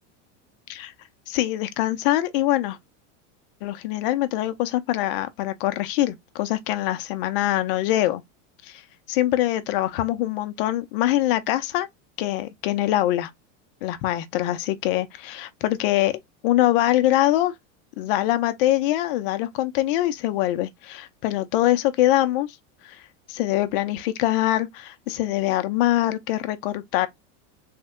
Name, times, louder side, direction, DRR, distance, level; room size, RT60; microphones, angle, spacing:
voice 1, 1.3-2.8 3.6-8.2 8.6-8.8 9.1-11.9 12.2-13.3 13.8-16.1 16.4-17.5 18.0-22.6 22.8-23.0 23.3-27.1, left 14 dB, 45° left, 0.5 m, -23 dB
3.5 x 2.1 x 3.5 m
supercardioid pair, 170°, 38 cm